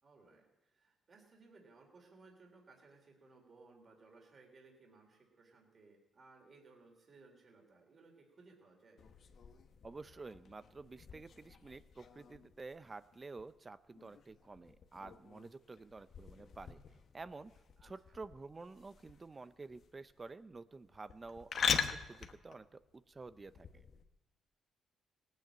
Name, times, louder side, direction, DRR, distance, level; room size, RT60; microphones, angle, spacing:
voice 1, 0.0-9.0 17.8-18.2, right 3 dB, 40° right, 2 dB, 3.1 m, -62 dB
sound 1, 9.0-24.0, left 7 dB, 60° left, 1.1 m, -43 dB
voice 2, 9.8-16.8 17.1-17.5 17.8-23.8, right 3 dB, 25° right, 14 dB, 0.6 m, -50 dB
17.5 x 9.2 x 8.8 m, 1.0 s
cardioid pair, 90°, 0 cm